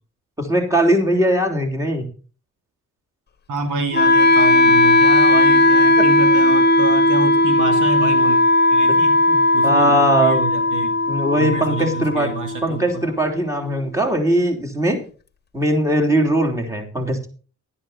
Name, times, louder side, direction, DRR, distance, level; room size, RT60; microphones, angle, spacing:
voice 1, 0.4-2.1 6.0-6.1 9.3-10.4 11.1-12.3 12.6-15.0 15.5-17.3, right 1 dB, 10° right, 1 dB, 3.2 m, -20 dB
voice 2, 3.5-8.4 8.7-9.2 9.5-11.0 11.4-13.0, right 3 dB, 85° right, 5 dB, 2.4 m, -28 dB
Wind instrument woodwind instrument, 3.9-13.9, left 1 dB, 35° left, 1.1 m, -16 dB
11.5 x 10.5 x 4.2 m, 0.38 s
cardioid pair, 75°, 30 cm